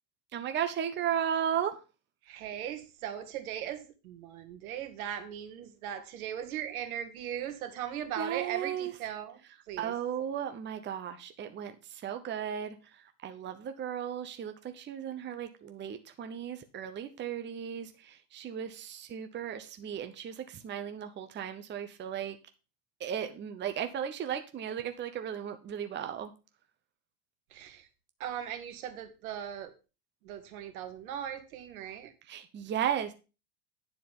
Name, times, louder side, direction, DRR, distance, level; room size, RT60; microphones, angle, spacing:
voice 1, 0.3-1.8 8.2-8.9 9.8-22.4 23.0-26.3 32.3-33.1, right 9 dB, 25° right, 7 dB, 0.9 m, -35 dB
voice 2, 2.2-9.4 9.7-9.9 27.5-27.9 28.2-29.7 30.2-32.1, right 10 dB, 75° right, 8 dB, 1.9 m, -38 dB
10.0 x 4.7 x 5.5 m, 0.31 s
hypercardioid pair, 110°, 44 cm